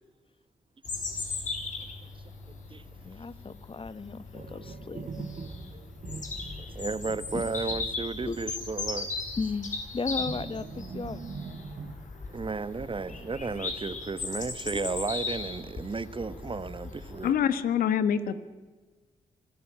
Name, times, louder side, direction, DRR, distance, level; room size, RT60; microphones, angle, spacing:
Bird vocalization bird call bird song, 0.8-17.3, left 4 dB, 60° left, 5.7 m, -37 dB
voice 1, 3.0-5.3 7.3-7.4 8.2-8.4 9.4-11.2, left 4 dB, 40° left, 16 dB, 1.3 m, -35 dB
sound 1, 4.3-8.7 8.9-9.1 10.2-11.9, right 4 dB, 55° right, 1.9 m, -42 dB
voice 2, 6.4-9.1 12.3-17.3, right 4 dB, 35° right, 16 dB, 1.2 m, -33 dB
voice 3, 17.2-18.4, left 8 dB, 80° left, 13 dB, 1.3 m, -25 dB
25.0 x 14.0 x 8.8 m, 1.3 s
supercardioid pair, 45°, 15 cm